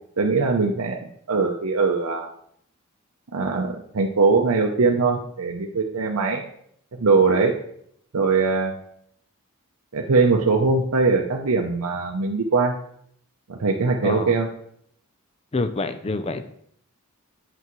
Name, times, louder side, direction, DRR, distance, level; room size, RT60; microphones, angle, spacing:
voice 1, 0.2-1.0 1.3-2.3 3.3-6.4 6.9-7.5 8.1-8.7 9.9-12.8 13.5-14.5, right 4 dB, 80° right, 1 dB, 0.6 m, -21 dB
voice 2, 14.0-14.3 15.5-16.5, left 3 dB, 25° left, 11 dB, 0.4 m, -27 dB
8.1 x 6.8 x 3.1 m, 0.69 s
head